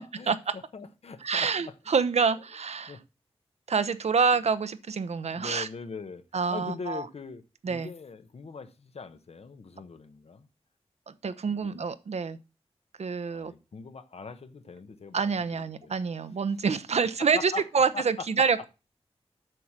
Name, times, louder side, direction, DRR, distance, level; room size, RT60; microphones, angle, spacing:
voice 1, 0.0-1.7 2.9-3.0 5.3-6.2 6.5-7.4 7.7-10.5 11.5-11.9 13.3-15.2 15.5-16.0 17.2-17.6 17.9-18.4, left 4 dB, 70° left, 1.0 m, -41 dB
voice 2, 1.2-3.0 3.7-5.7 6.3-7.0 7.6-7.9 11.2-12.4 13.0-13.5 15.1-18.7, right 5 dB, 80° right, 0.8 m, -27 dB
7.7 x 6.5 x 7.4 m
wide cardioid pair, 110°, 11 cm